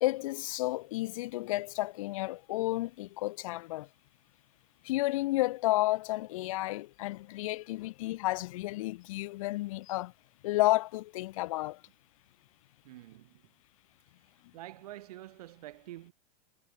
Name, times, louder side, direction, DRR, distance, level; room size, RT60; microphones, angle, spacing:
voice 1, 0.0-3.9 4.8-10.1 10.4-11.8, left 18 dB, 55° left, 0.6 m, -31 dB
voice 2, 12.8-13.5 14.5-16.1, right 15 dB, 65° right, 6.0 m, -47 dB
supercardioid pair, 170°, 21 cm